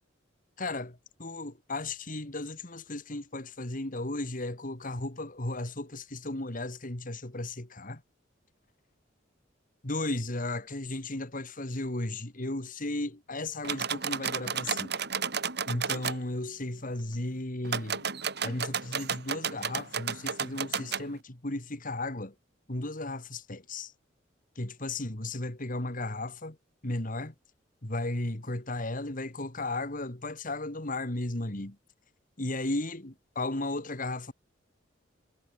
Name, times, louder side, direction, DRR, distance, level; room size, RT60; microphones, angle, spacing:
voice 1, 0.6-8.0 9.8-14.9 15.7-18.1 18.4-22.3 22.7-23.9 24.6-26.6 26.8-27.3 27.8-31.8 32.4-34.3, left 2 dB, 45° left, 2.5 m, -35 dB
sound 1, 13.6-16.2 17.6-21.1, right 6 dB, 60° right, 7.2 m, -32 dB
head